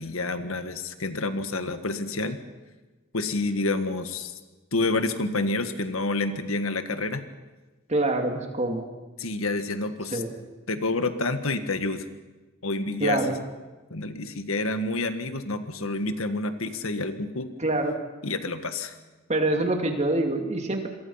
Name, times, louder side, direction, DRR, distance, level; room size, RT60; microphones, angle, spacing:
voice 1, 0.0-2.4 3.1-4.3 4.7-7.2 9.2-10.2 10.7-12.1 12.6-13.2 13.9-17.5 18.2-19.0, left 2 dB, 80° left, 9 dB, 1.7 m, -28 dB
voice 2, 7.9-8.9 10.1-10.3 13.0-13.4 17.6-18.0 19.3-20.9, right 2 dB, 30° right, 4 dB, 2.6 m, -25 dB
27.0 x 23.5 x 5.8 m, 1.2 s
head